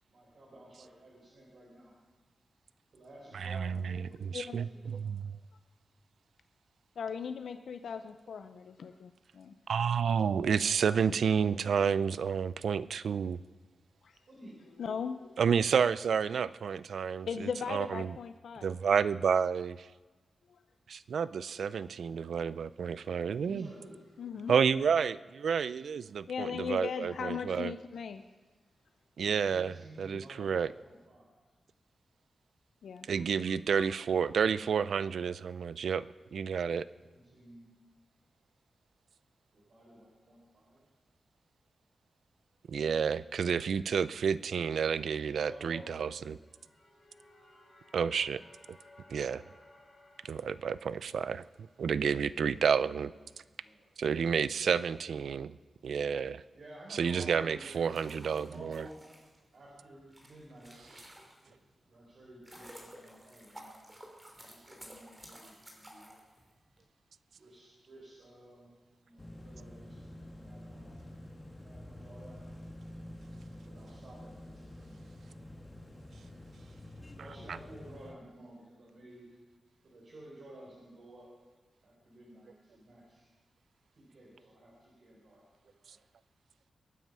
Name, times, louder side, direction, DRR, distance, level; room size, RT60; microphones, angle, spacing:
voice 1, 0.1-1.9 2.9-4.1 4.4-5.3 14.3-14.6 23.3-24.5 29.4-31.3 36.9-37.7 39.5-40.8 45.3-46.5 53.0-53.9 56.5-58.9 59.5-60.8 61.4-61.5 61.8-64.0 64.4-66.2 67.4-68.7 69.0-70.1 70.4-70.9 71.6-72.4 73.6-75.0 77.1-79.3 79.8-81.3 81.8-83.3 83.9-86.0, right 1 dB, 60° right, -6 dB, 4.7 m, -53 dB
voice 2, 3.3-5.4 9.7-13.4 15.4-18.1 18.6-19.9 20.9-23.7 24.5-27.7 29.2-30.7 33.1-36.9 42.7-46.4 47.9-48.4 48.7-48.8 49.1-49.4 50.2-51.4 51.8-53.1 54.0-55.6 55.8-56.4 56.9-58.9 77.5-77.6, right 6 dB, 80° right, 17 dB, 0.4 m, -30 dB
voice 3, 7.0-9.5 14.0-14.2 14.8-15.4 17.3-18.7 20.5-20.6 24.2-24.5 26.3-28.2 32.8-33.1 33.5-33.9, left 6 dB, 85° left, 9 dB, 0.6 m, -38 dB
sound 1, 46.3-53.2, left 2 dB, 35° left, 2.9 m, -61 dB
sound 2, 57.6-61.6 62.1-66.8, equal, 15° right, 3.2 m, -53 dB
sound 3, 69.2-78.1, left 1 dB, 20° left, 1.8 m, -48 dB
22.5 x 9.4 x 5.6 m, 1.3 s
wide cardioid pair, 105°, 0 cm